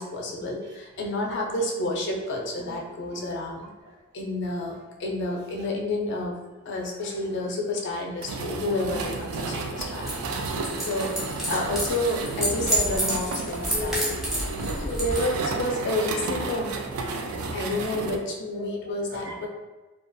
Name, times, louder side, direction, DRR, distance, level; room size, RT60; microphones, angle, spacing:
voice 1, 0.0-3.7 4.1-10.1 10.5-10.6 10.8-14.0 14.8-16.8 17.5-19.5, left 1 dB, 55° left, 0 dB, 0.4 m, -30 dB
sound 1, 8.2-18.2, right 3 dB, 90° right, 0.3 m, -32 dB
sound 2, 10.0-15.2, equal, ahead, 0.5 m, -30 dB
voice 2, 13.7-14.8 17.0-17.6 19.2-19.5, left 2 dB, 50° right, -4 dB, 0.6 m, -36 dB
2.6 x 2.3 x 2.2 m, 1.2 s
head